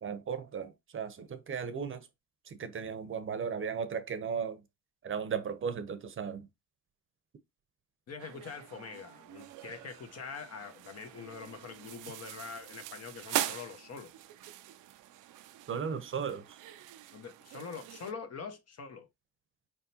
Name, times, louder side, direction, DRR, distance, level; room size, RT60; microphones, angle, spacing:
voice 1, 0.0-2.1 2.5-4.6 5.0-6.5 15.7-16.6, right 6 dB, 45° right, 0.7 m, -36 dB
voice 2, 8.1-14.1 17.1-19.1, left 5 dB, 55° left, 1.1 m, -44 dB
sound 1, 8.2-18.1, right 13 dB, 85° right, 0.5 m, -42 dB
4.4 x 3.6 x 2.8 m
cardioid pair, 90°, 30 cm